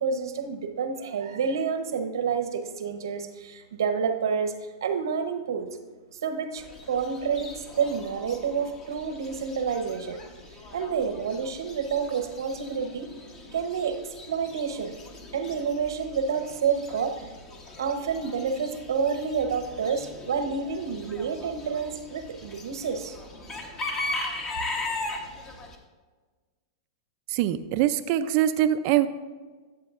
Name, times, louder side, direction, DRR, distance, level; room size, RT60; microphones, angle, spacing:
voice 1, 0.0-4.5 4.8-5.7 6.2-10.2 10.7-13.1 13.5-14.0 14.3-14.9 15.3-17.4 17.8-23.2, right 6 dB, 85° right, 6 dB, 0.9 m, -29 dB
Chicken rooster / Bird, 6.6-25.8, left 2 dB, 25° left, 1.1 m, -39 dB
voice 2, 27.3-29.1, right 12 dB, 45° right, 10 dB, 0.4 m, -23 dB
11.5 x 7.5 x 2.5 m, 1.4 s
hypercardioid pair, 135°, 2 cm